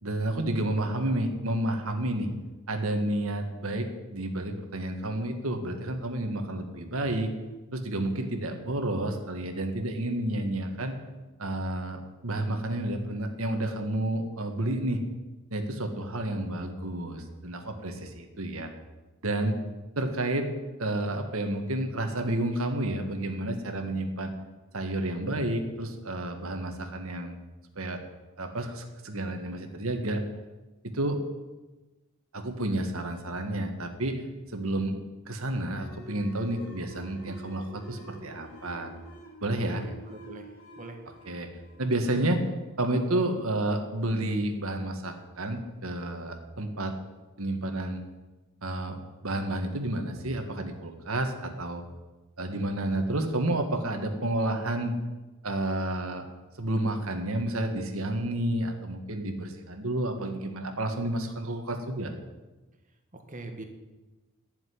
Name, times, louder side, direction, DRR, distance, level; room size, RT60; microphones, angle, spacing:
voice 1, 0.0-2.3 2.7-7.3 7.7-11.0 11.4-15.0 15.5-18.7 19.2-19.6 20.0-20.5 20.8-24.3 24.7-27.4 27.8-28.0 28.4-30.2 30.9-31.2 32.3-34.2 34.5-35.0 35.3-38.9 39.4-39.8 41.3-41.5 41.8-42.4 42.8-46.9 47.4-48.0 48.6-49.0 49.2-51.8 52.4-54.9 55.4-56.3 56.6-62.1, right 1 dB, 70° right, 5 dB, 1.8 m, -30 dB
sound 1, 35.6-42.9, right 1 dB, 70° left, 2.8 m, -49 dB
voice 2, 39.4-41.0 63.1-63.6, right 2 dB, 35° right, 5 dB, 1.6 m, -44 dB
11.5 x 7.1 x 9.7 m, 1.1 s
head